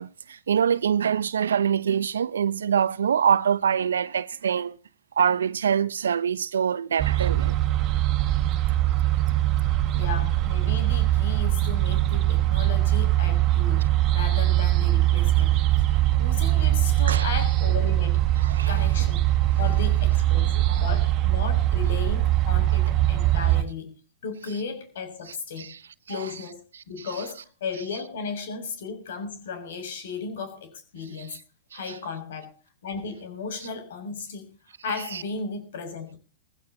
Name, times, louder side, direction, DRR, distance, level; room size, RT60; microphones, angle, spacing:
voice 1, 0.0-4.8 5.2-7.6 17.1-17.3 18.4-18.9 20.7-20.8 25.6-25.8 26.1-26.3 31.2-31.4 35.1-35.2, right 8 dB, 80° right, 0.9 m, -25 dB
sound 1, 7.0-23.6, right 14 dB, 35° right, 2.0 m, -22 dB
voice 2, 10.0-15.8 16.2-18.2 18.7-19.2 19.6-23.9 24.2-25.7 26.1-26.6 26.9-31.4 31.7-32.5 32.8-34.5 34.8-36.2, left 5 dB, 65° left, 6.3 m, -35 dB
19.5 x 16.0 x 2.9 m
hypercardioid pair, 115°, 0 cm